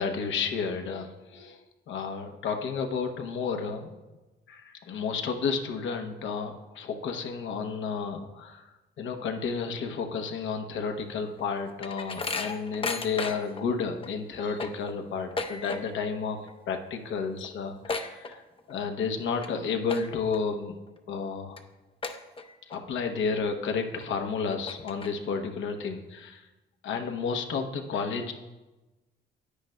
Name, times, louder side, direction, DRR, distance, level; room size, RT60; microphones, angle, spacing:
voice 1, 0.0-3.9 4.5-8.7 9.0-16.4 16.7-18.4 18.7-20.8 21.1-21.6 22.7-26.5 26.8-28.3, left 5 dB, 75° left, 5 dB, 0.9 m, -31 dB
sound 1, 11.2-13.6 14.0-14.1 14.4-16.1 16.4-16.8 17.0-17.1 17.4-18.8 19.2-19.5 19.8-20.4 20.9-21.0 21.6-21.7 22.0-22.8 23.2-23.3 24.0-24.1 24.5-25.4, left 3 dB, 25° left, 0.7 m, -35 dB
9.7 x 9.7 x 2.2 m, 1.1 s
cardioid pair, 90°, 20 cm